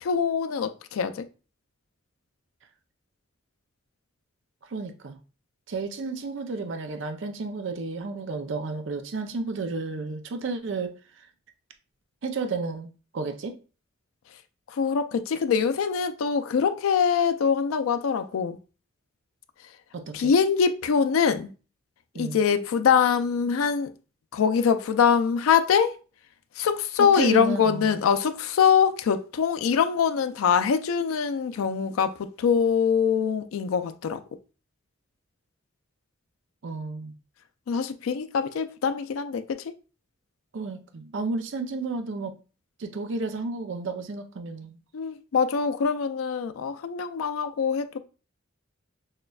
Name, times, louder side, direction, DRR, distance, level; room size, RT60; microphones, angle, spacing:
voice 1, 0.0-1.2 14.7-18.6 20.1-21.5 22.2-23.9 24.3-26.0 26.6-34.2 37.7-39.7 44.9-48.0, left 6 dB, 90° left, 0.4 m, -23 dB
voice 2, 4.7-5.2 5.7-10.9 12.2-13.6 19.9-20.3 22.1-22.4 27.0-28.0 36.6-37.1 40.5-42.4 42.8-44.8, right 3 dB, 65° right, 0.5 m, -32 dB
6.4 x 2.2 x 2.3 m
head